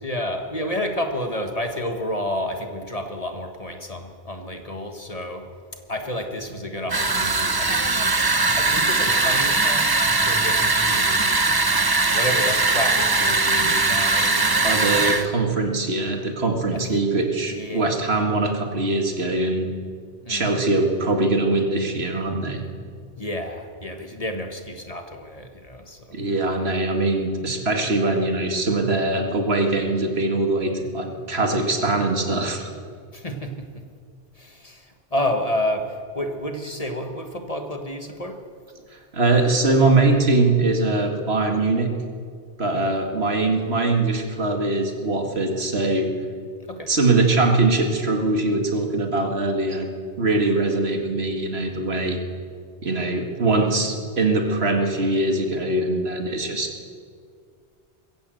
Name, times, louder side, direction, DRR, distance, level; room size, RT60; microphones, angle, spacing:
voice 1, 0.0-5.5 5.9-7.9 8.6-11.3 12.1-15.4 16.7-16.9 17.5-17.9 20.2-20.5 23.2-26.2 33.1-33.8 34.3-38.4 42.7-43.0 46.7-46.9, left 1 dB, 35° left, 6 dB, 1.5 m, -30 dB
sound 1, 6.9-15.3, right 3 dB, 25° right, 0.8 m, -20 dB
voice 2, 14.6-19.7 20.3-22.6 26.1-32.7 39.1-41.9 42.6-46.1 46.9-49.9 50.2-52.2 52.8-56.7, right 2 dB, 65° right, 4 dB, 2.2 m, -22 dB
21.5 x 15.5 x 7.8 m, 2.1 s
omnidirectional pair, 1.2 m